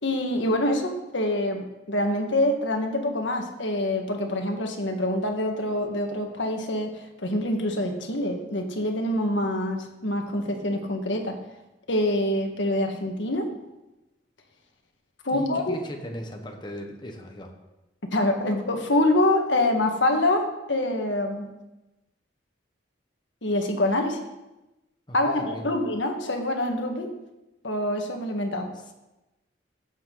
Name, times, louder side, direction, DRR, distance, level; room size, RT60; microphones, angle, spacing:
voice 1, 0.0-11.4 11.9-13.5 15.2-15.7 18.1-21.5 23.4-24.2 25.1-27.1 27.6-28.7, left 1 dB, 85° left, 4 dB, 1.6 m, -25 dB
voice 2, 15.3-17.5 25.1-25.8 28.7-28.9, equal, 25° left, 2 dB, 1.3 m, -38 dB
16.0 x 7.6 x 4.0 m, 0.99 s
head